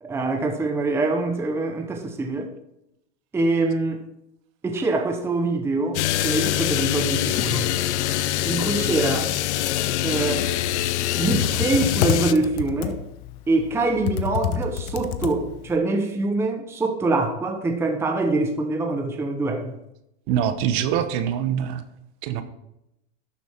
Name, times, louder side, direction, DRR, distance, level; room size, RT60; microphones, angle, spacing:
voice 1, 0.0-2.5 3.3-4.0 4.6-7.7 8.4-9.3 10.0-10.5 11.2-13.0 13.5-19.8, right 3 dB, 10° right, 0.8 m, -24 dB
sound 1, 5.9-12.3, left 13 dB, 80° left, 0.7 m, -24 dB
Computer keyboard, 10.2-15.8, left 10 dB, 50° left, 1.0 m, -29 dB
voice 2, 20.3-21.8 22.2-22.4, right 9 dB, 45° right, 1.2 m, -24 dB
12.0 x 7.2 x 4.6 m
supercardioid pair, 145°, 33 cm